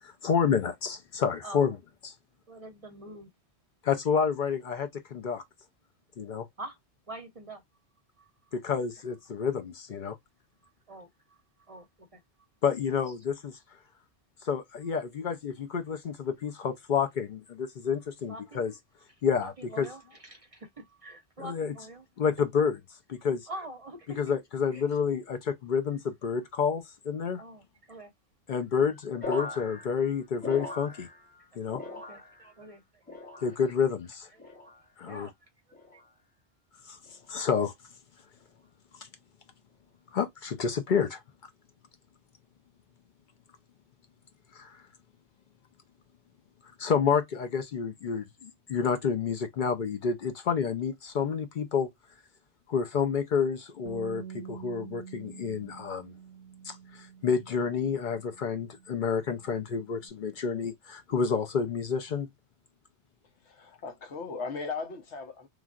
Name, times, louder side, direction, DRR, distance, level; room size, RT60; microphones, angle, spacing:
voice 1, 0.0-1.8 2.0-2.1 3.8-5.4 6.2-6.5 8.5-10.2 12.6-13.6 14.4-18.7 19.2-19.9 21.4-21.7 22.2-22.8 23.1-23.5 24.1-27.4 28.5-31.1 31.6-31.8 33.4-34.3 35.0-35.3 36.9-37.0 37.3-37.7 40.1-41.2 44.5-44.8 46.8-51.9 52.7-56.1 56.6-62.3, left 6 dB, 55° left, 0.6 m, -29 dB
voice 2, 2.5-3.3 6.6-6.8 7.1-7.6 8.2-8.3 10.9-11.4 11.7-12.2 18.3-18.6 19.4-22.0 23.5-24.2 24.7-24.8 27.4-28.1 28.8-28.9 31.7-33.0 34.3-34.4 35.0-35.3 35.9-36.0, right 2 dB, 40° right, 0.6 m, -45 dB
sound 1, 29.2-31.4 31.7-32.6 33.1-33.8 34.4-34.8 35.7-36.1 37.0-37.3, left 2 dB, 10° left, 0.8 m, -40 dB
Bass guitar, 53.9-60.1, right 8 dB, 90° right, 0.9 m, -47 dB
voice 3, 63.4-65.5, left 4 dB, 85° left, 1.1 m, -37 dB
3.2 x 2.4 x 2.3 m
omnidirectional pair, 1.1 m